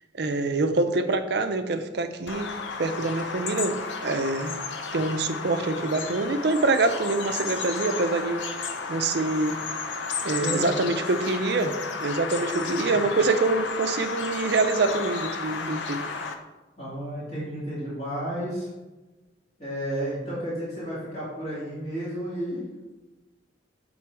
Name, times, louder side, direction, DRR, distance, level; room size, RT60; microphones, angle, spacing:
voice 1, 0.2-2.5 2.8-4.6 4.9-8.4 8.9-9.6 10.2-11.7 12.0-16.1, right 3 dB, 65° right, 8 dB, 0.5 m, -25 dB
Bird vocalization bird call bird song, 2.3-16.3, left 4 dB, 85° left, 0.6 m, -33 dB
voice 2, 10.4-11.0 12.5-12.9 16.8-18.7 19.6-22.6, equal, 40° left, -10 dB, 2.2 m, -32 dB
7.4 x 3.8 x 4.6 m, 1.2 s
head